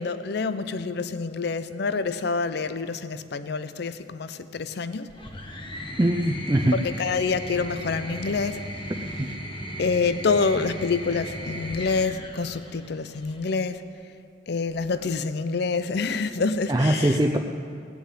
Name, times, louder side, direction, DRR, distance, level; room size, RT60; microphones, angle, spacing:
voice 1, 0.0-5.1 6.7-8.6 9.8-13.8 14.5-17.2, left 4 dB, 65° left, 13 dB, 0.5 m, -27 dB
sound 1, 5.1-13.5 14.7-15.3, equal, 25° left, 1.3 m, -37 dB
voice 2, 6.0-6.7 9.2-9.3 16.7-17.4, right 1 dB, 20° right, 3 dB, 0.5 m, -21 dB
18.0 x 6.8 x 9.2 m, 2.4 s
head